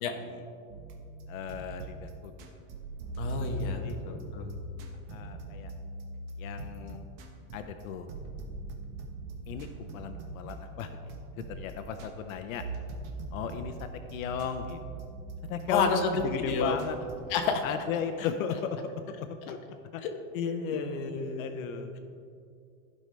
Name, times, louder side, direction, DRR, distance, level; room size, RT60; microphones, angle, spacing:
sound 1, 0.7-17.2, right 1 dB, 40° right, 1.0 m, -41 dB
voice 1, 1.3-2.3 3.7-4.0 5.1-5.7 6.4-7.0 7.5-8.1 9.5-10.9 11.4-12.6 13.3-14.8 15.5-17.0 17.6-18.8 19.5-19.6 19.9-20.0 20.7-20.8 21.4-22.0, left 7 dB, 80° left, 7 dB, 0.7 m, -36 dB
voice 2, 3.2-4.5 15.7-16.1 16.4-16.8 17.3-17.6 20.3-21.6, left 5 dB, 40° left, 3 dB, 1.0 m, -30 dB
15.0 x 5.3 x 3.3 m, 2.4 s
supercardioid pair, 175°, 41 cm